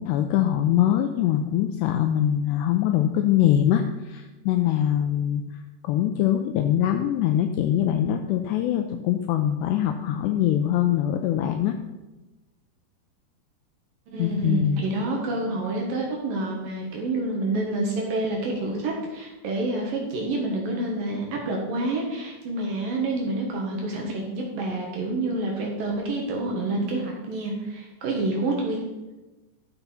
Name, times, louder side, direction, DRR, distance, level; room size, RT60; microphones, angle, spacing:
voice 1, 0.0-5.4 5.8-11.8 14.2-14.8, left 11 dB, 85° left, 7 dB, 2.4 m, -23 dB
voice 2, 14.1-28.8, right 2 dB, 60° right, -1 dB, 2.6 m, -28 dB
13.0 x 7.0 x 5.7 m, 1.1 s
omnidirectional pair, 5.5 m